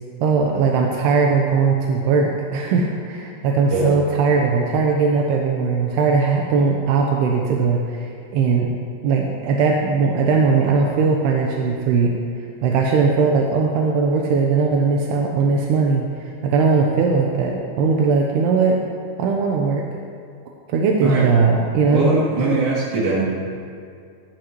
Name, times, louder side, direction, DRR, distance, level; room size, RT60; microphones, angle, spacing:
voice 1, 0.2-8.7 9.0-12.2 12.6-18.8 19.2-19.8 20.7-22.5, right 4 dB, 75° right, 0 dB, 2.4 m, -19 dB
voice 2, 21.8-23.3, right 2 dB, 55° right, -8 dB, 4.3 m, -21 dB
24.5 x 11.5 x 3.1 m, 2.3 s
omnidirectional pair, 5.6 m